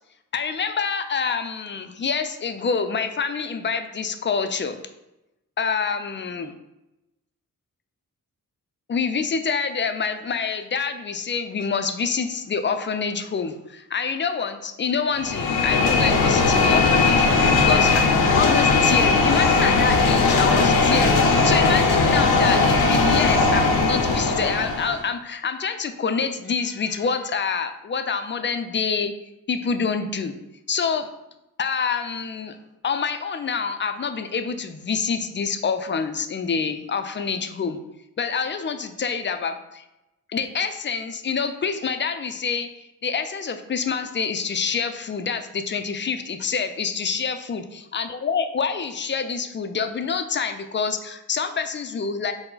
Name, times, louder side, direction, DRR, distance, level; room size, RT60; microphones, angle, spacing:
voice 1, 0.3-4.8 5.6-6.5 8.9-29.1 29.5-30.3 30.7-31.1 31.6-32.6 32.8-37.8 38.2-39.8 40.3-52.3, left 5 dB, 35° left, 8 dB, 0.4 m, -26 dB
sound 1, 15.2-25.0, left 4 dB, 90° left, 0.6 m, -18 dB
4.4 x 2.1 x 3.8 m, 0.93 s
cardioid pair, 65°, 36 cm